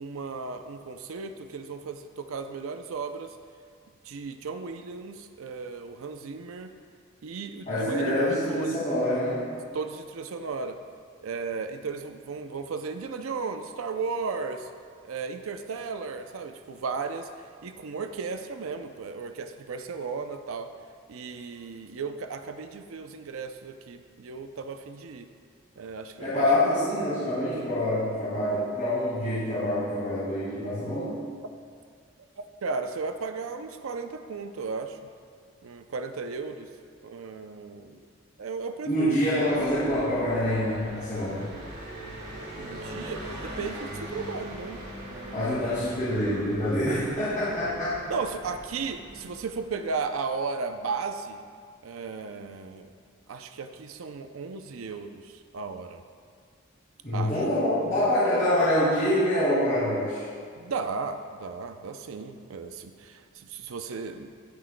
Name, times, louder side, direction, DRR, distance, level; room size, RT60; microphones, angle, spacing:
voice 1, 0.0-3.4 4.0-6.7 7.2-8.8 9.7-10.8 11.2-14.7 15.0-17.3 17.6-20.7 21.1-25.3 25.8-26.5 32.6-35.0 35.6-36.7 37.0-38.0 38.4-39.1 39.4-39.6 42.6-44.8 45.1-45.7 48.1-51.4 51.8-52.9 53.3-56.0 57.1-57.3 60.6-64.3, right 4 dB, 80° right, 7 dB, 0.5 m, -35 dB
voice 2, 7.7-9.5 26.2-31.2 38.9-41.5 45.3-48.0 57.0-60.2, left 1 dB, 35° left, -12 dB, 2.1 m, -26 dB
Car passing by, 39.5-50.1, equal, 50° right, 1.8 m, -41 dB
18.0 x 6.2 x 2.2 m, 2.1 s
head